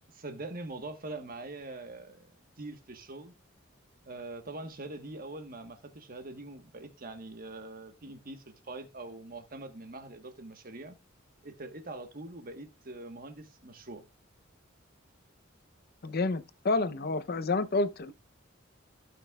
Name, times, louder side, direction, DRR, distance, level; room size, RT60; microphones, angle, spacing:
voice 1, 0.2-3.3 4.0-11.0 11.4-14.0, right 2 dB, 45° right, 1.3 m, -43 dB
voice 2, 16.0-18.1, left 3 dB, 50° left, 0.7 m, -29 dB
15.0 x 6.1 x 2.3 m
head